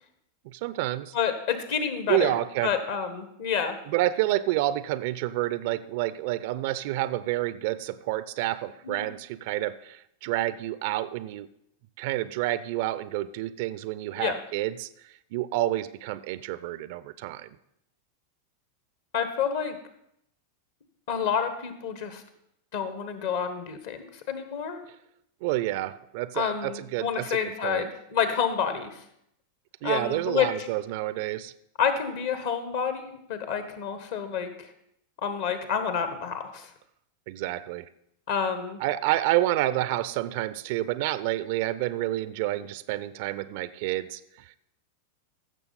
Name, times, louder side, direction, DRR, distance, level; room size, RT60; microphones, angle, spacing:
voice 1, 0.4-1.1 2.1-2.7 3.9-11.5 12.0-17.5 25.4-27.9 29.8-31.5 37.3-37.9 38.8-44.6, right 15 dB, 50° right, 16 dB, 0.4 m, -29 dB
voice 2, 1.1-2.3 2.6-3.8 8.8-9.1 14.2-14.4 19.1-19.8 21.1-22.2 22.7-24.8 26.3-29.0 29.8-30.5 31.8-34.7 35.2-36.7 38.3-38.8, left 7 dB, 50° left, 9 dB, 1.3 m, -29 dB
15.5 x 6.8 x 4.1 m, 0.76 s
figure-of-eight pair, 90°, 0 cm